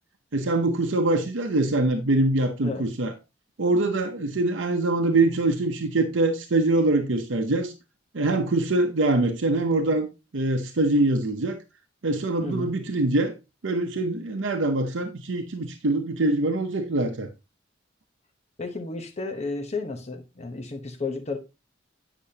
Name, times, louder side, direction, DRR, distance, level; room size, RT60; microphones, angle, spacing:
voice 1, 0.3-3.1 3.6-7.7 8.1-10.1 10.3-11.6 12.0-13.3 13.6-17.3, right 2 dB, 75° right, 0.8 m, -24 dB
voice 2, 12.4-12.7 18.6-21.4, left 3 dB, 35° left, 0.9 m, -32 dB
8.4 x 5.9 x 2.8 m
head